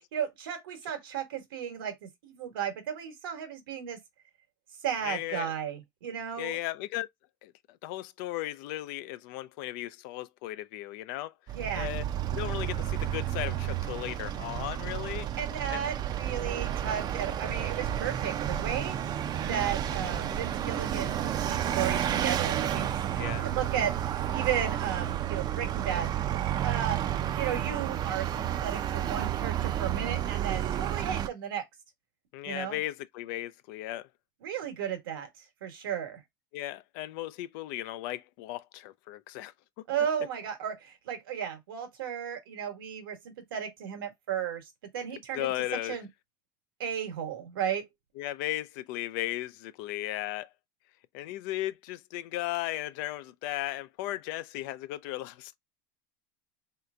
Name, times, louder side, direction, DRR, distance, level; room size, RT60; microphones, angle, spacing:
voice 1, 0.1-4.0 4.8-6.6 11.5-11.9 15.4-19.0 19.5-22.9 23.1-26.1 26.6-27.0 27.3-31.6 32.4-32.8 34.4-36.2 39.9-44.7 44.9-45.5 45.9-46.1 46.8-47.9, right 9 dB, 85° right, 1.2 m, -34 dB
voice 2, 5.0-5.5 6.4-7.1 7.4-11.3 11.8-12.0 12.3-15.3 15.7-15.8 23.2-23.5 32.3-34.1 36.5-39.5 45.3-46.0 48.2-50.5 51.1-55.5, left 15 dB, 65° left, 0.4 m, -36 dB
Vehicle, 11.5-31.3, right 11 dB, 35° right, 0.4 m, -31 dB
3.3 x 2.8 x 2.3 m
supercardioid pair, 115°, 11 cm